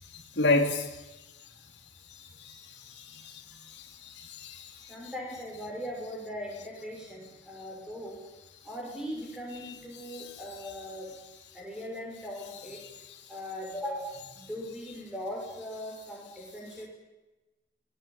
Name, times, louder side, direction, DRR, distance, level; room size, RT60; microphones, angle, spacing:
voice 1, 0.4-0.9 2.1-2.6 2.9-3.4 3.7-4.9 10.1-10.2, left 2 dB, 65° left, -1 dB, 3.2 m, -30 dB
voice 2, 4.9-8.2 8.6-11.1 11.5-12.8 13.3-16.9, equal, 5° right, -2 dB, 6.5 m, -39 dB
26.0 x 20.0 x 9.1 m, 1.1 s
head